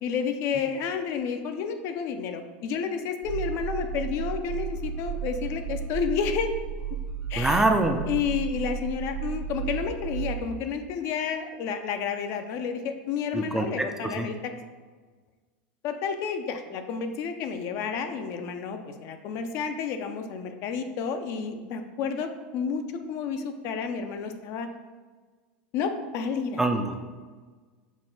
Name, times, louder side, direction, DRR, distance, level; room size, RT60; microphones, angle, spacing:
voice 1, 0.0-6.5 7.3-7.7 8.1-14.5 15.8-22.8 23.1-24.7 25.7-26.6, left 6 dB, 50° left, 7 dB, 0.5 m, -30 dB
sound 1, 3.2-10.6, right 8 dB, 80° right, 1.3 m, -33 dB
voice 2, 7.4-8.0 13.3-14.3 26.6-27.0, right 2 dB, 5° right, 5 dB, 0.3 m, -25 dB
6.0 x 2.2 x 3.8 m, 1.4 s
supercardioid pair, 110°, 6 cm